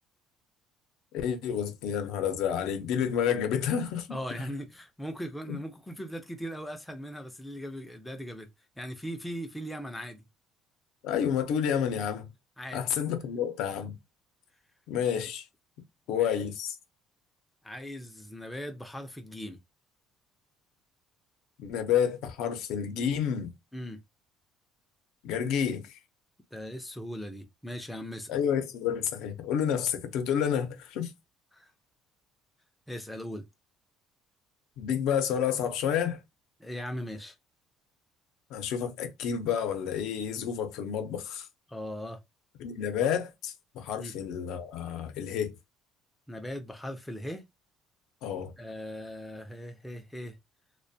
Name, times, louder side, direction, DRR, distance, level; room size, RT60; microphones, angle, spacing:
voice 1, 1.1-4.1 5.5-5.6 11.0-12.3 12.7-14.0 14.9-15.5 16.1-16.8 21.6-23.5 25.2-26.0 28.3-31.1 34.8-36.2 38.5-41.5 42.6-45.5 48.2-48.5, left 8 dB, 75° left, 0.5 m, -29 dB
voice 2, 4.1-8.5 8.8-10.3 12.6-13.1 15.2-15.3 16.1-16.4 17.6-19.6 23.7-24.0 26.5-28.4 31.5-31.7 32.9-33.4 36.6-37.3 41.7-42.2 44.0-44.1 46.3-47.5 48.6-50.4, equal, 5° left, 0.4 m, -39 dB
2.4 x 2.1 x 2.6 m
cardioid pair, 135°, 0 cm